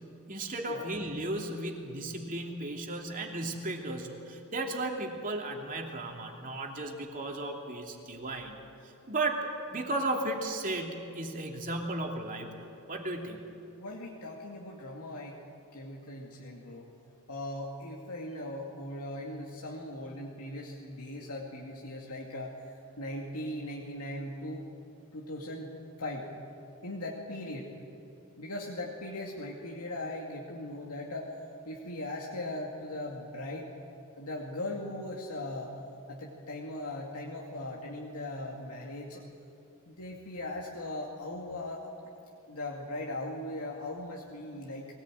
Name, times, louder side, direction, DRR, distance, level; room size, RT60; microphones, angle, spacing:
voice 1, 0.3-8.6 9.1-13.4, right 2 dB, 40° right, 1 dB, 2.9 m, -35 dB
voice 2, 13.8-15.4 15.7-16.9 17.3-24.6 25.1-25.7 26.0-26.3 26.8-27.7 28.4-31.3 31.7-33.7 34.2-35.7 36.1-39.2 39.9-41.9 42.5-44.9, left 1 dB, 85° left, -2 dB, 2.3 m, -39 dB
22.5 x 18.0 x 9.1 m, 2.8 s
head